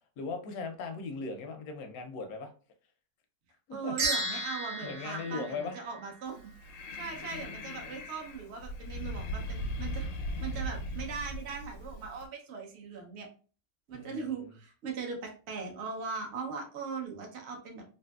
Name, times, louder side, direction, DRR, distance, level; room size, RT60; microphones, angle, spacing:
voice 1, 0.2-2.5 3.7-3.9 4.8-5.8 13.9-14.6, left 4 dB, 70° left, 5 dB, 0.9 m, -38 dB
voice 2, 3.7-6.5 6.9-10.0 10.4-13.3 13.9-17.8, right 5 dB, 85° right, 1 dB, 0.5 m, -39 dB
sound 1, 4.0-6.4, right 2 dB, 60° right, 1.3 m, -34 dB
Breathing, 6.3-12.3, equal, 85° left, 1.3 m, -38 dB
3.2 x 2.7 x 2.2 m, 0.38 s
omnidirectional pair, 2.0 m